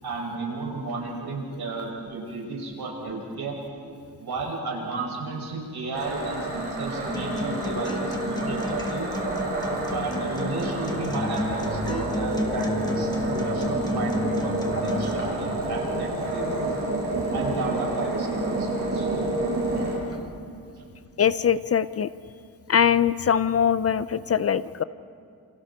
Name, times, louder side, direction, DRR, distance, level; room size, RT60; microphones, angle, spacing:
voice 1, 0.0-3.6 4.2-9.1 9.9-16.7 17.3-19.1, right 3 dB, 85° right, -2 dB, 6.6 m, -33 dB
sound 1, 5.9-20.0, right 2 dB, 35° right, 7.2 m, -29 dB
Acoustic guitar, 7.1-15.1, left 2 dB, 10° left, 1.7 m, -32 dB
Car / Engine, 9.0-17.3, left 3 dB, 65° left, 3.8 m, -45 dB
voice 2, 21.2-22.1 22.7-24.8, left 8 dB, 40° left, 15 dB, 0.5 m, -22 dB
30.0 x 28.5 x 4.3 m, 2.4 s
wide cardioid pair, 175°, 37 cm